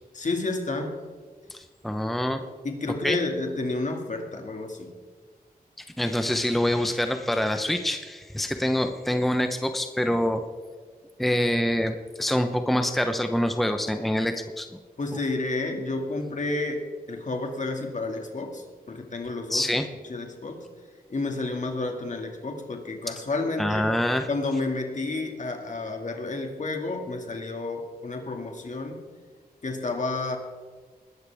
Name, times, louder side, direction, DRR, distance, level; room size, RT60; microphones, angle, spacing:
voice 1, 0.2-1.0 2.6-4.9 15.0-16.8 17.1-19.7 20.1-20.7 21.1-23.9 24.3-29.1 29.6-30.4, left 2 dB, 50° left, 3 dB, 2.2 m, -30 dB
voice 2, 1.5-2.4 3.0-3.2 6.0-10.4 11.2-14.7 19.5-19.9 23.6-24.3, left 1 dB, ahead, 6 dB, 0.9 m, -25 dB
20.5 x 12.5 x 3.5 m, 1.5 s
wide cardioid pair, 80°, 16 cm